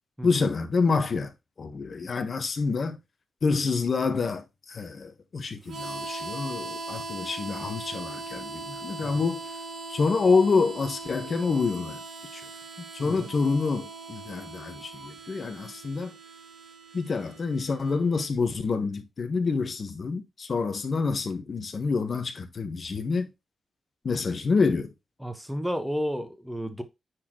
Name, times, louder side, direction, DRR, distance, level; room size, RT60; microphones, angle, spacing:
voice 1, 0.2-1.3 1.6-3.0 3.4-9.5 9.9-12.0 12.3-12.4 12.9-16.2 16.9-23.3 24.0-24.9, left 4 dB, 45° left, 1.4 m, -27 dB
Harmonica, 5.6-18.3, right 3 dB, 60° right, 2.2 m, -40 dB
voice 2, 25.2-26.8, equal, ahead, 1.2 m, -32 dB
9.5 x 4.5 x 3.1 m
wide cardioid pair, 125°, 0 cm